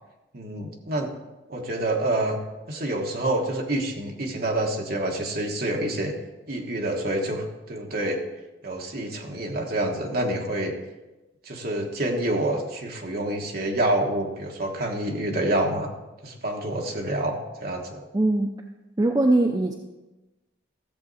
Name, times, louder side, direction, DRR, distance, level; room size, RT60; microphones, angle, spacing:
voice 1, 0.3-1.1 1.5-2.4 2.7-6.1 6.5-8.2 8.6-10.7 11.4-15.9 16.2-18.0, right 1 dB, 50° right, 1 dB, 1.4 m, -27 dB
voice 2, 18.1-18.5 19.0-19.7, right 2 dB, 20° right, 2 dB, 0.5 m, -21 dB
14.0 x 7.4 x 4.1 m, 1.1 s
head